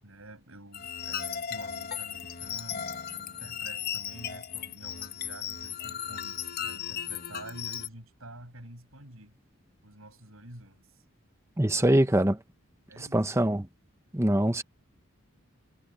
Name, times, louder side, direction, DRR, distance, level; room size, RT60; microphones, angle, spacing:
voice 1, 0.0-9.4 9.8-11.0 11.7-12.2 12.9-13.4, right 1 dB, 75° right, 7.9 m, -48 dB
sound 1, 0.7-7.9, left 9 dB, 45° left, 1.1 m, -36 dB
voice 2, 11.6-12.3 13.1-13.7 14.1-14.6, right 1 dB, 15° right, 1.0 m, -23 dB
head